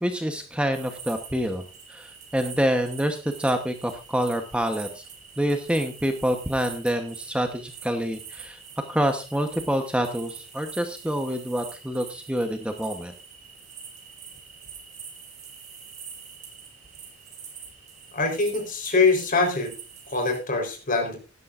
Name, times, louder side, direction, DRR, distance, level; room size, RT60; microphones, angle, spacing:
voice 1, 0.0-1.6 1.9-5.1 5.4-8.6 8.9-13.1, equal, 5° right, 5 dB, 1.0 m, -27 dB
sound 1, 0.7-20.4, right 6 dB, 35° right, 4.7 m, -44 dB
voice 2, 18.1-19.7 20.1-21.2, left 3 dB, 40° left, 3 dB, 4.0 m, -23 dB
17.0 x 12.5 x 2.5 m, 0.32 s
head